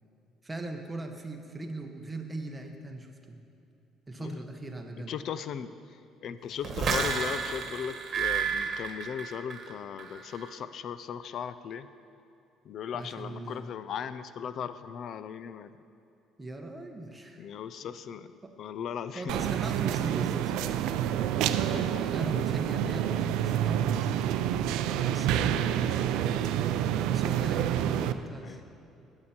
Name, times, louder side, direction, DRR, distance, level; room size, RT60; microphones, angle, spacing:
voice 1, 0.4-3.4 4.1-5.1 12.9-13.6 16.4-17.5 18.4-18.5 19.1-20.9 22.0-24.1 24.9-26.6 27.1-28.6, right 2 dB, 10° right, 2 dB, 1.1 m, -39 dB
voice 2, 5.1-11.9 12.6-15.8 17.4-18.3 18.6-19.3 21.7-22.4 25.3-25.9 28.4-28.6, left 8 dB, 55° left, 13 dB, 0.5 m, -38 dB
sound 1, 6.6-9.7 10.0-10.4, right 6 dB, 40° right, 1.6 m, -31 dB
sound 2, 19.3-28.1, right 10 dB, 85° right, 0.4 m, -28 dB
15.0 x 8.8 x 4.4 m, 2.7 s
cardioid pair, 130°, 0 cm